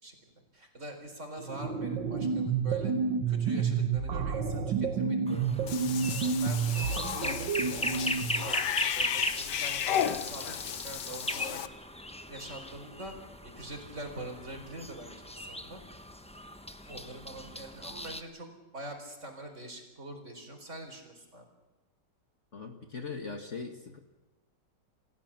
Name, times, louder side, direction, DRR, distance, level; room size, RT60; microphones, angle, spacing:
voice 1, 0.0-2.9 3.3-5.6 6.0-8.6 8.9-11.6 12.3-13.1 13.4-15.8 16.8-18.5 18.7-21.5, right 1 dB, 40° right, 4 dB, 4.6 m, -44 dB
sound 1, 1.4-8.5, right 6 dB, 90° right, 2.1 m, -30 dB
sound 2, 5.3-18.2, left 1 dB, 5° left, 0.8 m, -38 dB
Cat / Bathtub (filling or washing), 5.7-11.7, left 10 dB, 70° left, 1.5 m, -34 dB
voice 2, 22.5-24.0, left 4 dB, 40° left, 5 dB, 1.9 m, -40 dB
28.0 x 16.0 x 7.4 m, 1.1 s
omnidirectional pair, 1.9 m